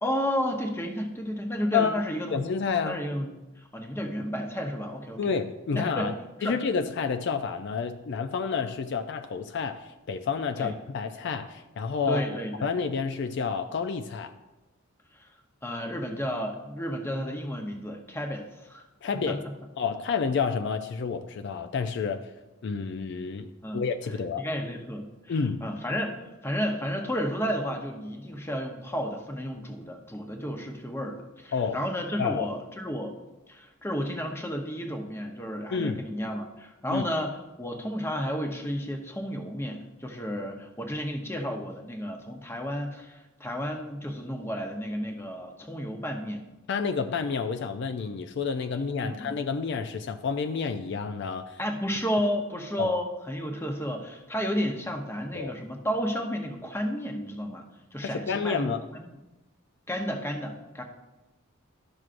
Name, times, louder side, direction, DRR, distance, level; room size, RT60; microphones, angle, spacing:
voice 1, 0.0-2.5 2.8-3.3 3.6-5.2 5.7-6.1 6.4-6.6 10.6-10.7 12.1-12.7 15.1-15.3 15.6-18.8 19.3-19.4 23.6-23.8 24.4-33.1 33.5-46.4 49.0-49.3 51.6-57.6 57.9-59.2 59.9-60.8, equal, 10° left, 3 dB, 0.7 m, -32 dB
voice 2, 2.3-3.0 5.2-6.1 6.4-12.2 12.6-14.3 19.0-19.4 19.8-22.3 22.6-23.5 23.7-24.4 25.3-25.7 31.5-31.8 32.2-32.5 35.7-36.0 36.9-37.0 46.7-51.6 52.8-52.9 55.3-55.5 58.0-58.8, left 5 dB, 55° left, 7 dB, 0.4 m, -29 dB
12.0 x 6.1 x 2.5 m, 1.0 s
head